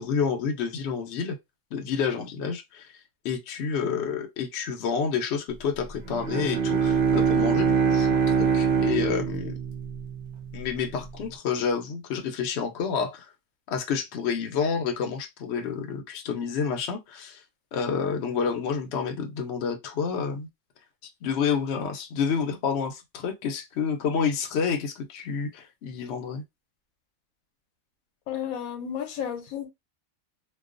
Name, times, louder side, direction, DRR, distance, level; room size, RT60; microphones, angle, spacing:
voice 1, 0.0-1.4 1.7-2.9 3.2-9.5 10.5-13.3 13.7-17.4 17.7-20.5 21.2-26.4, left 6 dB, 65° left, 0.8 m, -29 dB
Bowed string instrument, 6.0-10.6, right 6 dB, 55° right, 0.6 m, -24 dB
voice 2, 28.3-29.7, left 9 dB, 90° left, 1.0 m, -32 dB
2.2 x 2.2 x 2.4 m
omnidirectional pair, 1.4 m